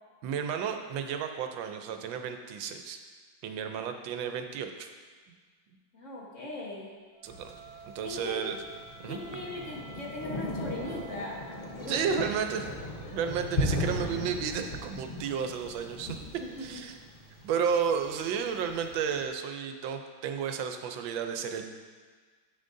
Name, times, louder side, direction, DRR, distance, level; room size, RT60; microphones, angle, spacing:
voice 1, 0.2-3.0 3.4-4.9 7.2-7.5 7.8-8.6 9.0-9.2 11.9-12.7 13.1-16.2 16.6-16.9 17.4-21.6, right 7 dB, 80° right, 6 dB, 1.4 m, -32 dB
voice 2, 5.9-6.9 8.0-8.4 9.1-11.4 11.7-12.1 16.4-16.8, left 2 dB, 45° left, -3 dB, 1.4 m, -39 dB
Wind instrument woodwind instrument, 7.1-11.7, right 2 dB, 60° right, 1.2 m, -50 dB
Thunder, 7.3-19.2, left 1 dB, 60° left, 0.5 m, -37 dB
10.0 x 7.8 x 2.6 m, 1.5 s
omnidirectional pair, 2.1 m